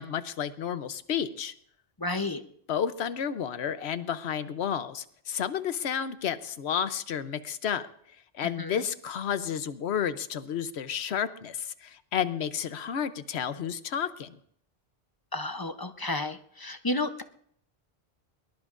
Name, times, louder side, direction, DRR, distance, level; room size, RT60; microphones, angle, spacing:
voice 1, 0.0-1.5 2.7-7.8 8.3-14.4, left 8 dB, 85° left, 12 dB, 1.0 m, -31 dB
voice 2, 2.0-2.4 8.6-8.7 15.3-17.2, left 2 dB, 25° left, 9 dB, 0.6 m, -31 dB
22.0 x 19.5 x 2.5 m, 0.67 s
omnidirectional pair, 1.1 m